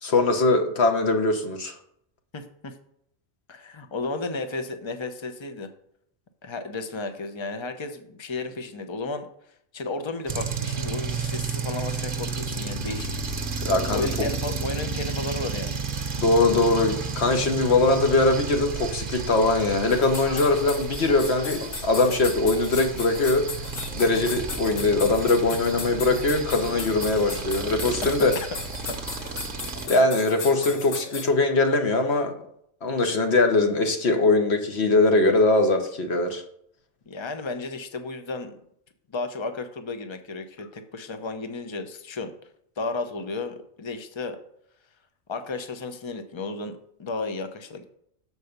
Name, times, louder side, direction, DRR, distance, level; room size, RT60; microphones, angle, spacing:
voice 1, 0.0-1.7 13.6-14.3 16.2-23.5 23.9-28.3 29.9-32.3 32.8-36.4, left 2 dB, 55° left, 5 dB, 1.3 m, -21 dB
voice 2, 2.3-2.8 3.5-5.7 6.4-9.3 9.7-13.1 13.9-15.8 28.0-28.5 28.9-29.0 37.1-38.6 39.1-42.3 42.8-44.4 45.3-47.9, left 3 dB, 30° left, 8 dB, 0.6 m, -33 dB
sound 1, 10.3-29.9, right 5 dB, 45° right, 1.0 m, -32 dB
sound 2, 19.9-31.3, left 4 dB, 75° left, 1.6 m, -36 dB
6.9 x 4.7 x 6.6 m, 0.70 s
omnidirectional pair, 1.4 m